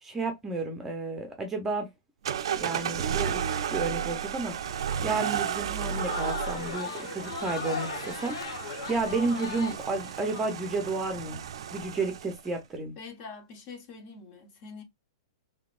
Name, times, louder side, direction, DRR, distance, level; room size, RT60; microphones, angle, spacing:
voice 1, 0.0-1.9 2.5-4.7 5.0-8.4 8.9-11.4 11.7-12.9, right 3 dB, 10° right, 0.7 m, -32 dB
sound 1, 2.2-12.5, right 8 dB, 70° right, 0.5 m, -33 dB
Crowd, 5.6-10.5, left 5 dB, 70° left, 1.0 m, -37 dB
voice 2, 13.0-14.8, left 4 dB, 35° left, 1.1 m, -44 dB
4.0 x 2.7 x 2.4 m
supercardioid pair, 160°, 3 cm